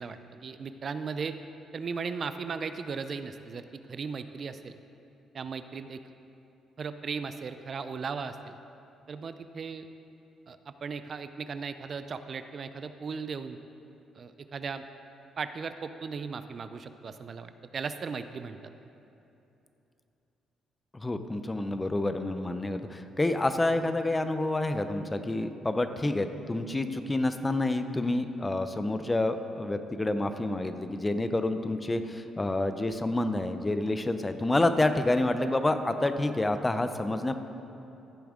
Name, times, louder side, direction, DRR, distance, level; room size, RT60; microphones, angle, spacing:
voice 1, 0.0-1.4 1.7-4.8 5.3-6.0 6.8-8.6 9.1-9.9 10.5-13.6 14.1-14.9 15.4-18.6, right 5 dB, 50° right, 10 dB, 0.4 m, -37 dB
voice 2, 20.9-37.4, left 2 dB, 20° left, 9 dB, 0.5 m, -28 dB
15.0 x 7.0 x 3.7 m, 2.9 s
cardioid pair, 90°, 0 cm